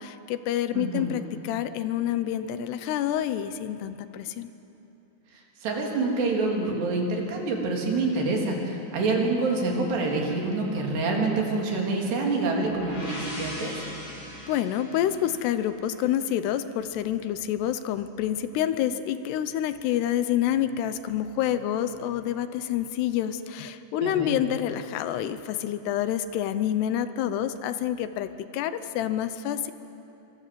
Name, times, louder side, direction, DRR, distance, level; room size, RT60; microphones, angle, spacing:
voice 1, 0.0-4.5 14.5-29.7, left 11 dB, 80° left, 11 dB, 2.9 m, -28 dB
voice 2, 0.7-1.1 5.3-13.8 24.0-24.4, right 3 dB, 80° right, 0 dB, 5.5 m, -27 dB
sound 1, 12.3-16.2, left 1 dB, 65° left, 9.4 m, -40 dB
26.5 x 25.0 x 7.7 m, 2.9 s
omnidirectional pair, 4.8 m